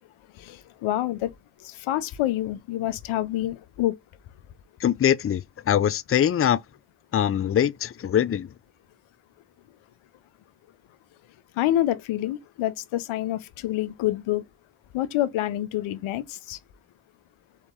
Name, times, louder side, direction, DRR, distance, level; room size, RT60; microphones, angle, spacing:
voice 1, 0.4-1.3 1.6-4.0 11.6-14.4 14.9-16.6, left 14 dB, 80° left, 0.7 m, -27 dB
voice 2, 4.8-6.6 7.1-8.5, left 9 dB, 30° left, 0.5 m, -23 dB
4.2 x 2.9 x 3.6 m
supercardioid pair, 40°, 48 cm